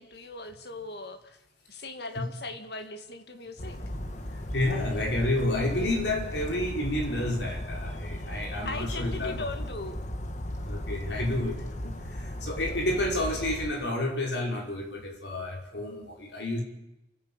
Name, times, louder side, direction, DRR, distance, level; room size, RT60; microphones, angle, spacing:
voice 1, 0.0-1.4 1.7-3.8 8.7-10.0 12.7-12.8, left 2 dB, 65° left, 7 dB, 2.1 m, -39 dB
Bird vocalization bird call bird song, 3.6-13.7, equal, 45° left, 1.6 m, -36 dB
voice 2, 4.3-9.5 10.6-16.6, left 1 dB, 90° left, 1 dB, 5.4 m, -30 dB
28.5 x 11.0 x 8.8 m, 0.91 s
head